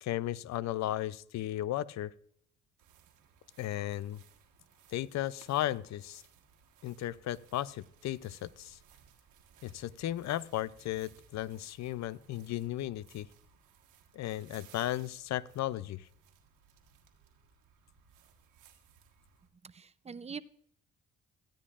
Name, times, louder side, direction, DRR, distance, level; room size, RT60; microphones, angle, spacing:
voice 1, 0.0-2.1 3.6-4.2 4.9-6.2 6.8-8.8 9.6-13.3 14.1-16.1, left 13 dB, 65° left, 19 dB, 0.5 m, -35 dB
sound 1, 2.8-19.5, right 7 dB, 90° right, 1.4 m, -62 dB
voice 2, 19.6-20.4, right 6 dB, 20° right, 16 dB, 0.4 m, -43 dB
14.5 x 10.0 x 2.4 m, 0.66 s
cardioid pair, 90°, 30 cm